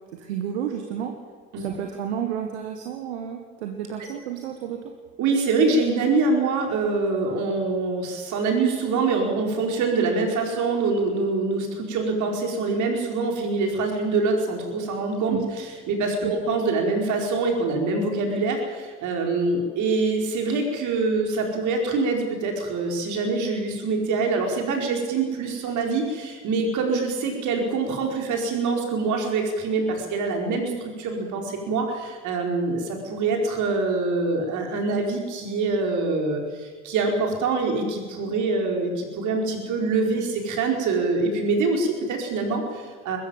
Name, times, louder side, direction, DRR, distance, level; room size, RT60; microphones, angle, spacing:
voice 1, 0.1-1.1 1.5-4.9 15.3-15.5 16.2-16.3, right 9 dB, 80° right, 4 dB, 1.7 m, -31 dB
voice 2, 5.2-43.2, right 3 dB, 60° right, 2 dB, 4.7 m, -25 dB
21.0 x 15.0 x 9.0 m, 1.5 s
hypercardioid pair, 55°, 33 cm